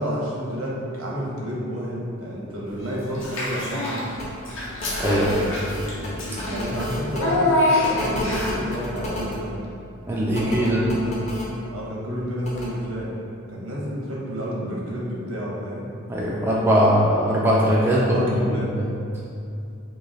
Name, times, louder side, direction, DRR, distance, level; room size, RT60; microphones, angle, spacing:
voice 1, 0.0-4.1 6.5-9.5 10.3-11.3 11.7-13.1 13.5-15.9 18.0-18.7, equal, 80° right, -5 dB, 0.9 m, -30 dB
Child speech kid speaking / Bathtub (filling or washing), 3.1-4.1 4.4-8.7, left 1 dB, 65° left, 0.8 m, -25 dB
sound 1, 4.2-4.3 4.8-7.2 7.8-9.4 10.3-11.5 12.4-12.7, left 1 dB, 30° left, 0.7 m, -31 dB
voice 2, 5.0-5.5 10.1-10.8 16.1-18.3 18.7-18.8, equal, 10° right, -5 dB, 0.3 m, -20 dB
3.0 x 3.0 x 3.8 m, 2.5 s
head